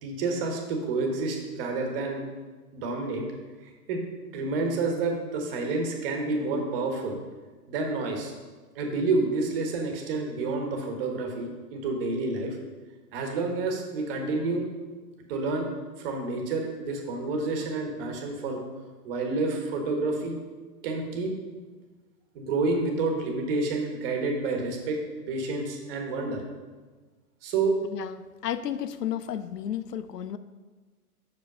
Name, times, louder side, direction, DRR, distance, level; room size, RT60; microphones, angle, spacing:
voice 1, 0.0-2.2 2.7-3.2 3.9-4.0 4.3-7.2 7.7-8.3 8.7-12.6 13.1-14.6 15.3-15.7 16.0-18.6 19.0-20.4 20.8-21.3 22.3-25.0 25.3-26.4 27.4-27.7, right 3 dB, 35° right, 3 dB, 1.3 m, -29 dB
voice 2, 27.8-30.4, left 10 dB, 85° left, 13 dB, 0.6 m, -33 dB
6.3 x 5.2 x 5.4 m, 1.4 s
hypercardioid pair, 135°, 47 cm